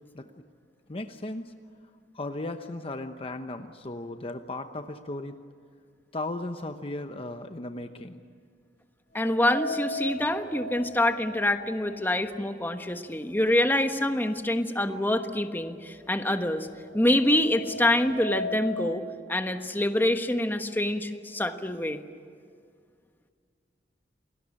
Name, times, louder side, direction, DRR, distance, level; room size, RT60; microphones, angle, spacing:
voice 1, 0.9-1.5 2.1-5.3 6.1-8.2, left 2 dB, 35° left, 7 dB, 1.0 m, -36 dB
sound 1, 9.1-13.2 13.5-13.6 14.6-14.7 15.1-18.9, left 1 dB, 50° left, 5.9 m, -38 dB
voice 2, 9.1-16.7 16.9-19.0 19.3-22.0, left 1 dB, 10° left, 7 dB, 1.3 m, -26 dB
28.0 x 19.5 x 10.0 m, 2.1 s
head